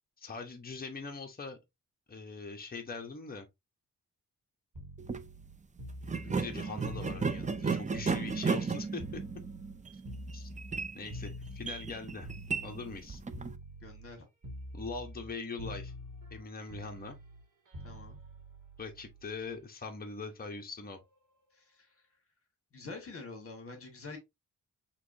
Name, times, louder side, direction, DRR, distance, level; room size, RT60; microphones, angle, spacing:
voice 1, 0.2-1.6 2.1-3.5 6.1-9.2 10.3-10.5 10.9-12.3 12.6-13.2 14.7-15.9 16.3-17.2 18.8-21.0, left 4 dB, 30° left, 1.0 m, -42 dB
sound 1, 4.7-8.7 9.0-13.0 13.3-14.2 14.4-15.3 15.6-19.6 20.8-21.0, equal, 70° right, 2.0 m, -46 dB
sound 2, 5.0-5.2 6.0-13.5, right 5 dB, 25° right, 0.4 m, -35 dB
voice 2, 13.8-14.3 17.8-18.2 21.5-22.0 22.7-24.2, left 3 dB, 45° left, 1.8 m, -46 dB
5.9 x 3.1 x 2.7 m
wide cardioid pair, 115°, 33 cm